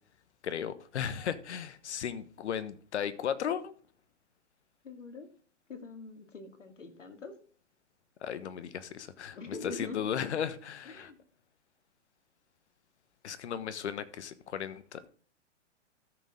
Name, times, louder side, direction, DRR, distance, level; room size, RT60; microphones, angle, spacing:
voice 1, 0.4-3.7 8.2-11.1 13.2-15.1, left 8 dB, 65° left, 1.3 m, -36 dB
voice 2, 4.8-5.3 5.7-7.4 9.3-10.0 10.8-11.2, left 3 dB, 80° left, 2.5 m, -43 dB
13.5 x 6.7 x 3.7 m
hypercardioid pair, 125°, 36 cm